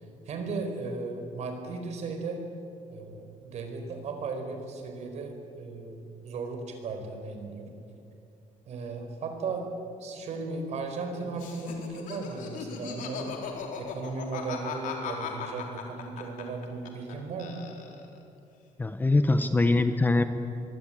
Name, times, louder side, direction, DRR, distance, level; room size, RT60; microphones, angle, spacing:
voice 1, 0.3-2.4 2.9-7.7 8.7-9.7 10.0-13.4 13.8-17.7, right 3 dB, 50° right, 5 dB, 4.6 m, -36 dB
Laughter, 11.4-17.1 17.4-18.2, left 7 dB, 70° left, 4.0 m, -38 dB
voice 2, 18.8-20.2, left 2 dB, 15° left, 8 dB, 1.0 m, -23 dB
24.0 x 24.0 x 9.0 m, 2.6 s
cardioid pair, 170°, 14 cm